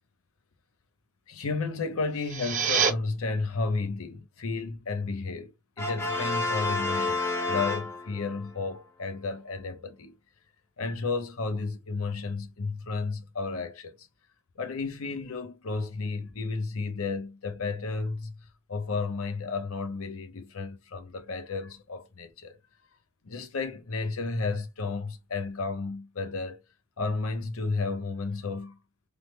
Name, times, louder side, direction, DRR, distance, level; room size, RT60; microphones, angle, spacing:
voice 1, 1.3-5.5 5.8-10.2 10.8-14.1 14.6-18.3 18.7-22.6 23.2-26.6 27.0-28.8, left 4 dB, 75° left, 0.7 m, -32 dB
sound 1, 2.1-2.9, right 6 dB, 35° right, 0.7 m, -26 dB
Brass instrument, 5.8-8.4, left 3 dB, 10° left, 0.6 m, -30 dB
3.4 x 2.1 x 3.1 m
head